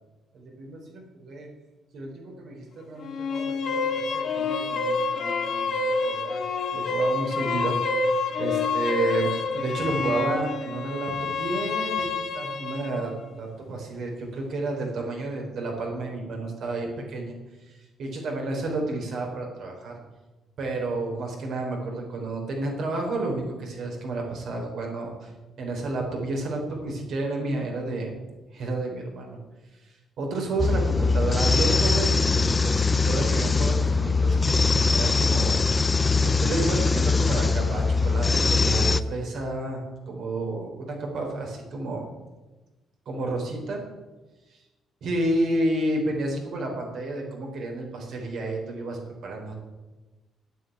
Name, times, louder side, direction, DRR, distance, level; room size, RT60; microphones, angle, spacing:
voice 1, 0.3-1.5 1.9-6.4 6.7-17.3 17.6-20.0 20.6-25.3 25.6-28.1 28.5-29.4 29.7-35.8 36.2-42.1 43.1-43.8 44.5-44.6 45.0-49.5, right 2 dB, 65° right, 0 dB, 4.2 m, -31 dB
sound 1, 3.0-13.0, left 3 dB, 60° left, 1.9 m, -27 dB
sound 2, 30.6-39.0, left 4 dB, 20° left, 0.5 m, -22 dB
9.2 x 9.1 x 9.4 m, 1.1 s
cardioid pair, 120°, 0 cm